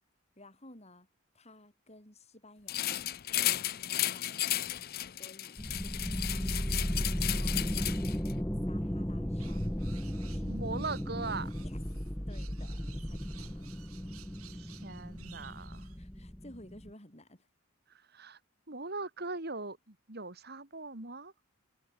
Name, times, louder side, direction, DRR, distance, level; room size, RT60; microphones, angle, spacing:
voice 1, 0.4-1.1 1.3-2.9 3.4-4.3 5.2-6.8 7.2-9.8 10.2-10.7 11.1-11.8 12.3-14.0 15.8-17.5, left 1 dB, 30° left, 7.7 m, -56 dB
sound 1, 2.7-8.3, left 14 dB, 45° left, 0.5 m, -34 dB
sound 2, 5.6-16.9, equal, 10° left, 1.4 m, -35 dB
sound 3, 9.4-16.0, right 13 dB, 90° right, 6.5 m, -57 dB
voice 2, 10.4-11.5 14.5-15.9 17.9-18.4 18.7-21.3, right 3 dB, 45° right, 2.9 m, -40 dB
head